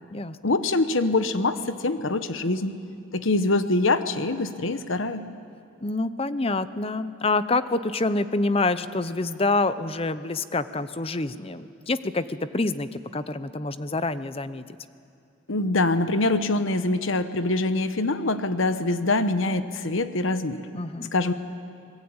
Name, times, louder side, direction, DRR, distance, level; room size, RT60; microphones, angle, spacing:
voice 1, 0.4-2.8 3.1-5.2 15.5-20.6 21.1-21.3, left 2 dB, 70° left, 10 dB, 1.1 m, -24 dB
voice 2, 5.8-14.6 20.7-21.1, left 2 dB, 30° left, 13 dB, 0.7 m, -27 dB
24.5 x 20.0 x 8.9 m, 2.5 s
head